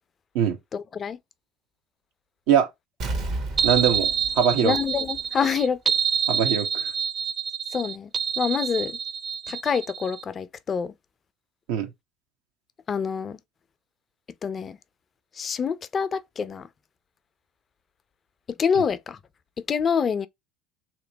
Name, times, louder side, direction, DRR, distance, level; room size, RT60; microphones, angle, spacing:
voice 1, 0.7-1.2 4.6-5.8 7.7-8.1 8.4-9.0 9.5-10.9 12.9-13.4 14.4-14.8 15.4-16.7 18.6-19.2 19.7-20.3, left 6 dB, 35° left, 0.4 m, -26 dB
Explosion, 3.0-5.6 5.9-6.0, right 2 dB, 55° right, 1.3 m, -33 dB
sound 1, 3.6-10.2, right 7 dB, 35° right, 0.3 m, -27 dB
voice 2, 3.6-4.1 4.3-4.7 6.3-6.9 11.7-11.9, right 8 dB, 75° right, 1.0 m, -22 dB
3.2 x 2.9 x 2.7 m
hypercardioid pair, 80°, 0 cm